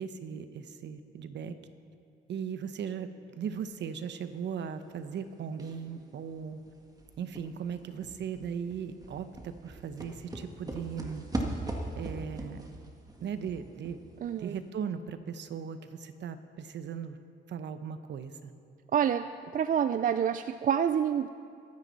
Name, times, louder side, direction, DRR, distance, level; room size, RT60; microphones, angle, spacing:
voice 1, 0.0-1.5 2.3-6.6 7.2-11.3 12.0-12.7 13.2-14.0 14.4-17.2 17.5-18.5, right 7 dB, 65° right, 10 dB, 0.9 m, -38 dB
sound 1, 5.6-5.9 6.3-6.4 6.7-14.4 14.7-14.8, right 2 dB, 20° right, 1.8 m, -39 dB
voice 2, 14.2-14.6 18.9-21.3, right 8 dB, 45° right, 11 dB, 0.4 m, -28 dB
23.0 x 9.6 x 4.1 m, 2.4 s
cardioid pair, 90°, 20 cm